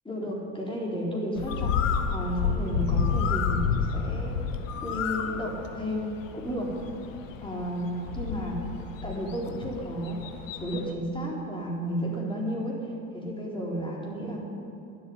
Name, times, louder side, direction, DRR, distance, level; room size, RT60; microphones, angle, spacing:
voice 1, 0.1-4.4 4.8-6.1 6.3-6.7 7.4-8.6 9.0-10.2 10.6-12.8 13.1-14.4, equal, 15° left, -3 dB, 4.2 m, -32 dB
Bird, 1.4-10.9, left 6 dB, 80° left, 1.1 m, -30 dB
12.5 x 7.8 x 10.0 m, 2.7 s
hypercardioid pair, 75°, 38 cm